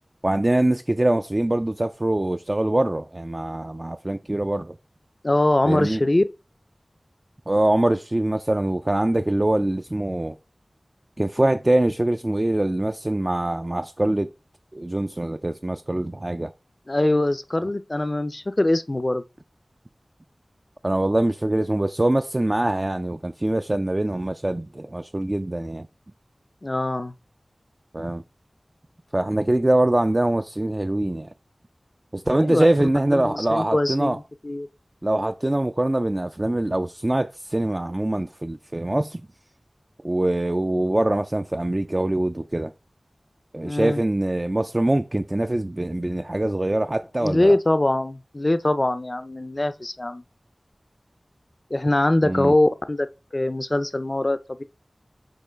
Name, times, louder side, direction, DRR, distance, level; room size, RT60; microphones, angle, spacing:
voice 1, 0.2-4.7 5.6-6.0 7.5-10.4 11.2-14.3 14.7-16.5 20.8-25.9 27.9-28.2 29.1-31.3 32.1-34.2 35.0-39.2 40.0-42.7 43.5-47.5 52.2-52.5, right 1 dB, 35° right, 0.3 m, -23 dB
voice 2, 5.2-6.2 16.9-19.2 26.6-27.1 32.4-32.6 33.1-34.7 43.6-44.0 47.2-50.2 51.7-53.1 53.3-54.6, left 1 dB, 45° left, 0.5 m, -22 dB
6.5 x 3.0 x 5.1 m
wide cardioid pair, 40°, 0 cm